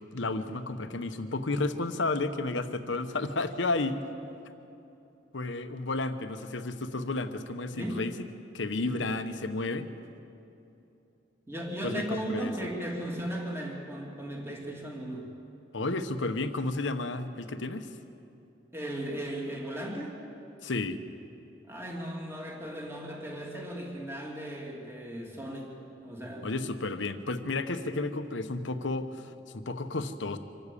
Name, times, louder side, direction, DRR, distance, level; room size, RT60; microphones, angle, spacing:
voice 1, 0.1-4.0 5.3-8.3 8.5-9.9 11.8-12.5 15.7-17.9 20.6-21.0 26.4-30.4, left 2 dB, 70° left, 9 dB, 1.1 m, -32 dB
voice 2, 11.5-15.3 18.7-20.2 21.6-25.8 26.0-26.5, right 1 dB, 15° right, -1 dB, 2.6 m, -36 dB
25.5 x 12.5 x 8.4 m, 2.8 s
head